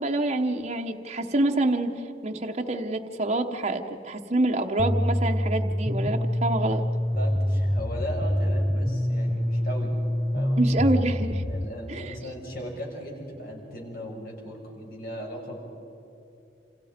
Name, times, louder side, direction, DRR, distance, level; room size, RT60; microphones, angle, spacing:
voice 1, 0.0-6.8 10.6-11.4 11.9-12.1, right 2 dB, 35° right, 3 dB, 1.1 m, -27 dB
sound 1, 4.8-11.7, equal, 5° left, 0.7 m, -26 dB
voice 2, 7.1-10.0 10.3-10.6 11.5-15.7, equal, 55° left, 0 dB, 6.0 m, -37 dB
28.5 x 27.5 x 5.2 m, 2.9 s
head